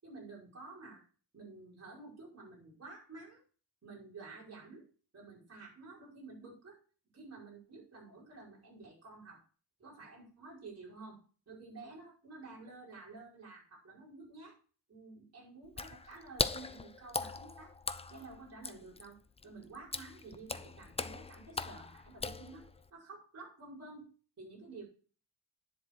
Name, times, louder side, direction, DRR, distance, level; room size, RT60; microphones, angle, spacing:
voice 1, 0.0-1.0 1.3-3.4 3.8-4.8 5.1-6.8 7.1-9.4 9.8-14.6 14.9-17.7 18.1-22.7 22.9-24.1 24.4-24.8, right 3 dB, 35° right, -5 dB, 5.3 m, -51 dB
Water / Splash splatter, 15.7-22.9, left 4 dB, 15° left, 0.4 m, -40 dB
10.0 x 7.4 x 4.6 m, 0.39 s
wide cardioid pair, 165°, 42 cm